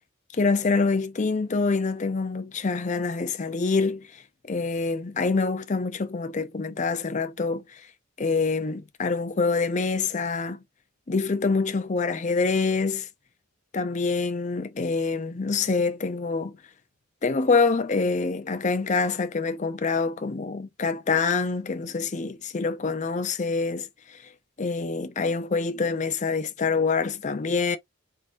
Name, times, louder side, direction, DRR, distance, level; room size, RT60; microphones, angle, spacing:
voice 1, 0.3-4.2 4.5-7.8 8.2-10.6 11.1-13.1 13.7-16.6 17.2-24.2 24.6-27.8, left 4 dB, 35° left, 0.5 m, -26 dB
3.9 x 3.7 x 2.5 m
head